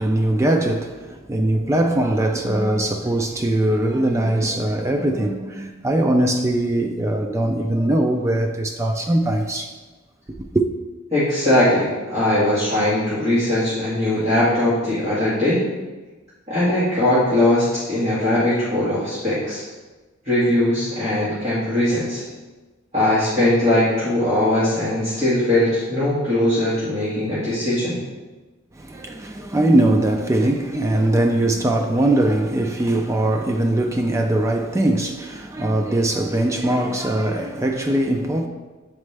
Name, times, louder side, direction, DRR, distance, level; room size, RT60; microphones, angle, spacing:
voice 1, 0.0-9.7 10.5-10.6 28.8-38.5, right 1 dB, 15° right, 0.3 m, -21 dB
voice 2, 11.1-15.6 16.5-19.6 20.2-22.2 22.9-28.0, left 1 dB, 30° right, 1.7 m, -20 dB
7.2 x 4.3 x 3.3 m
head